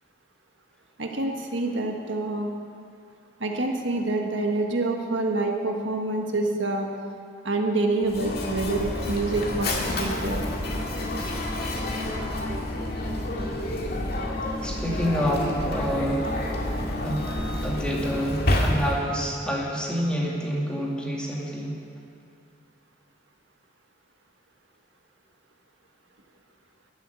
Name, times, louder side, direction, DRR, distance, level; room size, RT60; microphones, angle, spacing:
voice 1, 1.0-2.5 3.4-6.9 7.4-10.4, right 2 dB, 85° right, 2 dB, 1.5 m, -27 dB
Mechanisms, 8.0-19.2, left 1 dB, 55° left, 2.0 m, -29 dB
voice 2, 13.4-13.9 14.6-16.5 17.0-21.7, equal, 5° left, -3 dB, 2.3 m, -28 dB
14.0 x 8.3 x 9.5 m, 2.3 s
head